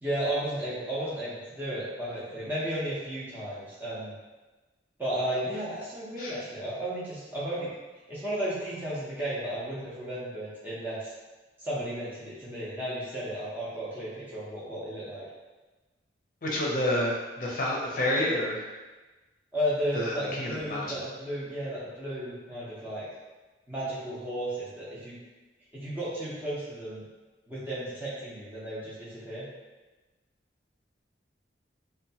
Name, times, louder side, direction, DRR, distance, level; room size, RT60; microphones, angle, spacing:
voice 1, 0.0-4.1 5.0-7.7 8.1-11.1 11.6-15.2 19.5-23.1 23.7-25.2 25.7-27.0 27.5-29.5, right 1 dB, 10° right, -9 dB, 0.7 m, -34 dB
voice 2, 16.4-18.6 19.9-21.0, left 1 dB, 45° left, -4 dB, 0.6 m, -29 dB
2.8 x 2.2 x 2.7 m, 1.2 s
head